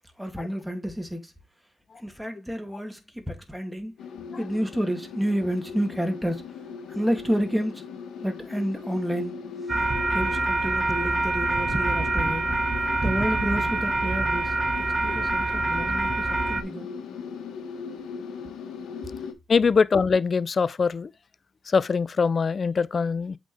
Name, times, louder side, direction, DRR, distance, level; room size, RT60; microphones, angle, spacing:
voice 1, 0.2-1.3 2.0-3.9 4.4-6.4 6.9-7.8 8.2-9.3 10.1-12.5 13.0-16.9, equal, 5° right, 2.6 m, -30 dB
sound 1, 4.0-19.3, left 6 dB, 85° left, 1.5 m, -38 dB
sound 2, 9.7-16.6, right 2 dB, 25° right, 1.6 m, -25 dB
voice 2, 19.5-21.1 21.7-23.4, left 5 dB, 50° left, 0.5 m, -23 dB
8.4 x 5.3 x 3.4 m
cardioid pair, 65°, 0 cm